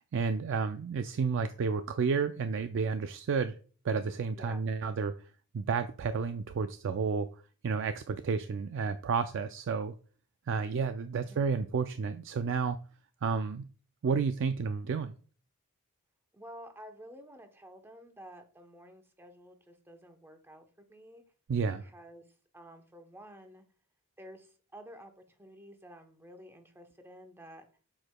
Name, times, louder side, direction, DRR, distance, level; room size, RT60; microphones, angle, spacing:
voice 1, 0.1-3.6 3.8-5.1 5.5-7.3 7.6-9.9 10.5-12.8 13.2-13.7 14.0-15.1 21.5-21.8, right 5 dB, 55° right, 10 dB, 0.4 m, -31 dB
voice 2, 11.2-11.5 16.3-21.2 21.7-22.3 22.5-23.6 24.2-27.7, equal, 10° right, 5 dB, 0.8 m, -51 dB
7.7 x 6.4 x 2.2 m, 0.40 s
head